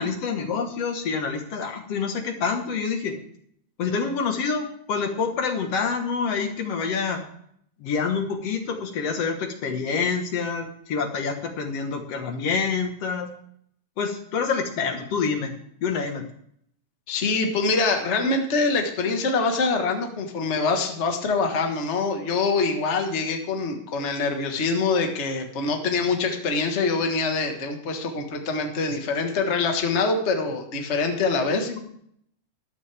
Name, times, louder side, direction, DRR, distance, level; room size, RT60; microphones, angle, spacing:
voice 1, 0.0-3.1 3.8-7.2 7.8-13.3 14.0-16.3 31.7-31.8, left 5 dB, 55° left, 5 dB, 2.1 m, -27 dB
voice 2, 17.1-31.7, left 4 dB, 90° left, 4 dB, 0.6 m, -24 dB
14.0 x 12.0 x 3.4 m, 0.68 s
omnidirectional pair, 3.9 m